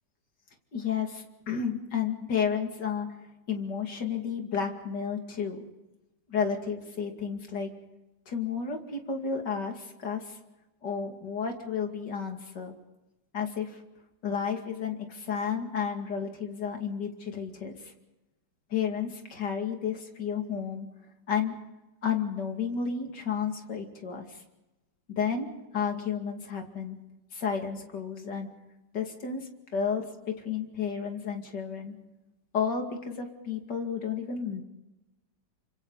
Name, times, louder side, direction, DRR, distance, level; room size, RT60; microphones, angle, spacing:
voice 1, 0.7-3.1 3.5-5.6 6.3-7.7 8.3-10.4 10.8-12.7 13.3-13.8 14.2-17.9 18.7-20.9 21.3-21.5 22.0-24.4 25.1-27.0 27.3-28.5 28.9-31.9 32.5-34.6, left 6 dB, 65° left, 3 dB, 3.1 m, -32 dB
29.5 x 25.5 x 4.1 m, 1.0 s
omnidirectional pair, 2.0 m